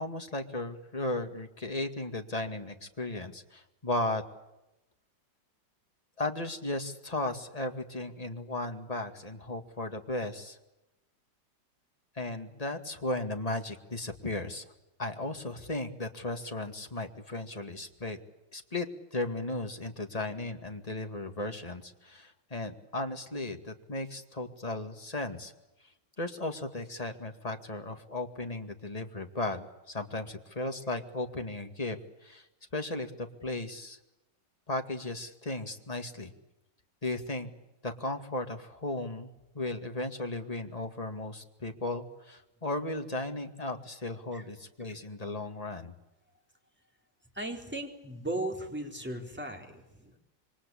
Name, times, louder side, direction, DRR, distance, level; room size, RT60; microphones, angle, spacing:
voice 1, 0.0-4.2 6.2-10.6 12.2-14.6 15.0-18.2 18.5-25.5 26.2-32.5 32.7-34.0 34.7-36.3 37.0-37.5 37.8-45.9, left 2 dB, 20° left, 5 dB, 2.2 m, -36 dB
voice 2, 47.3-50.2, right 1 dB, 5° right, 2 dB, 4.2 m, -37 dB
27.5 x 24.0 x 8.5 m, 0.95 s
omnidirectional pair, 2.0 m